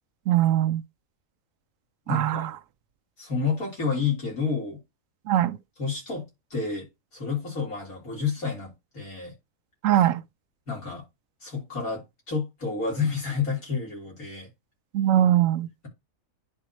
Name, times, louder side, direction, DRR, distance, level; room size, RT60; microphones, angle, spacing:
voice 1, 0.3-0.8 2.1-2.5 5.3-5.6 9.8-10.2 14.9-15.7, right 12 dB, 75° right, 1.0 m, -21 dB
voice 2, 2.1-2.5 3.2-4.8 5.8-9.3 10.7-11.0 11.4-14.5, left 5 dB, 90° left, 4.2 m, -30 dB
11.0 x 4.1 x 3.0 m
omnidirectional pair, 1.5 m